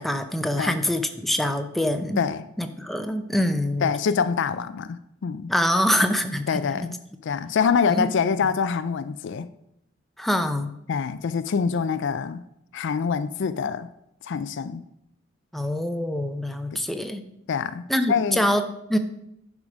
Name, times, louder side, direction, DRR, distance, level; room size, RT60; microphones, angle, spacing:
voice 1, 0.0-2.2 2.6-3.9 5.5-6.9 7.9-8.1 10.2-10.7 15.5-17.2 17.9-19.0, left 1 dB, ahead, 0.6 m, -25 dB
voice 2, 3.8-5.5 6.5-7.0 7.2-9.5 10.9-12.4 12.7-13.9 14.2-14.8 16.7-16.8 17.5-18.4, left 6 dB, 60° left, 0.4 m, -25 dB
11.0 x 4.9 x 5.0 m
head